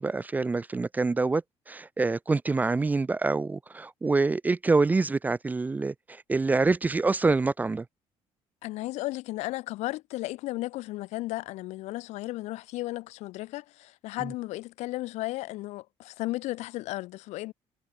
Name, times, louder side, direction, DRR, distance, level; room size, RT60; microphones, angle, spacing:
voice 1, 0.0-1.4 1.7-5.9 6.3-7.8, right 3 dB, 15° right, 0.6 m, -26 dB
voice 2, 8.6-17.5, left 18 dB, 90° left, 6.2 m, -34 dB
cardioid pair, 155°, 11 cm